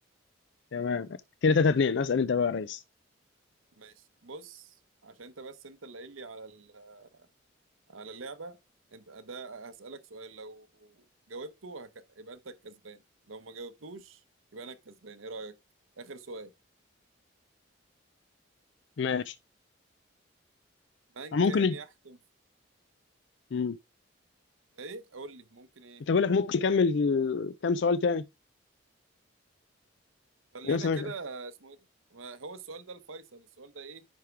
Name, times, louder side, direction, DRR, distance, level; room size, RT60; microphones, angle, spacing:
voice 1, 0.7-1.1 1.4-2.8 19.0-19.4 21.3-21.7 23.5-23.8 26.1-28.2 30.7-31.1, left 5 dB, 60° left, 0.4 m, -26 dB
voice 2, 3.8-7.3 7.9-8.6 8.9-13.0 13.3-14.2 14.5-15.6 16.0-16.5 21.1-22.2 24.7-26.0 30.5-31.8 32.1-34.0, right 3 dB, 85° right, 1.0 m, -44 dB
10.5 x 3.6 x 4.6 m
head